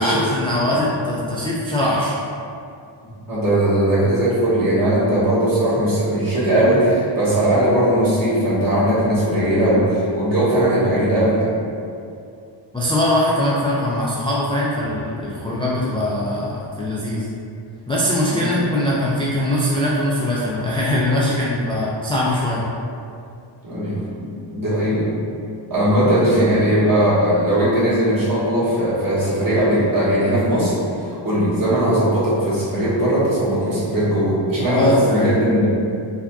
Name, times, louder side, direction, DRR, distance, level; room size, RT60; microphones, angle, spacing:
voice 1, 0.0-2.1 12.7-17.3 17.9-22.6 34.6-35.3, left 1 dB, 10° left, -7 dB, 0.3 m, -21 dB
voice 2, 3.0-11.5 18.3-18.6 23.6-25.1 25.7-35.7, right 1 dB, 45° right, -10 dB, 1.5 m, -19 dB
4.5 x 2.8 x 2.3 m, 2.5 s
wide cardioid pair, 100°, 49 cm